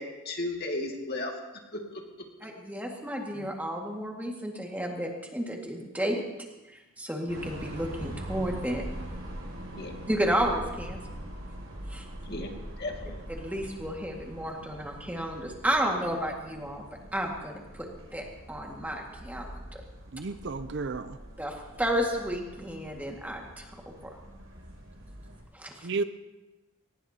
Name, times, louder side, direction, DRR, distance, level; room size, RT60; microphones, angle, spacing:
voice 1, 0.0-1.3 1.7-2.0 9.7-9.9 12.2-12.5 12.8-13.2, left 2 dB, 50° left, 1 dB, 2.2 m, -34 dB
voice 2, 2.4-6.2 6.7-8.8 10.1-11.0 11.9-12.1 13.3-16.8 17.1-19.8 21.4-24.1 25.5-25.9, equal, 5° right, 0 dB, 1.9 m, -32 dB
sound 1, 7.3-25.4, right 1 dB, 75° right, 6.4 m, -43 dB
voice 3, 20.1-21.2 25.8-26.0, right 4 dB, 55° right, 11 dB, 0.6 m, -32 dB
22.0 x 19.0 x 2.9 m, 1.1 s
head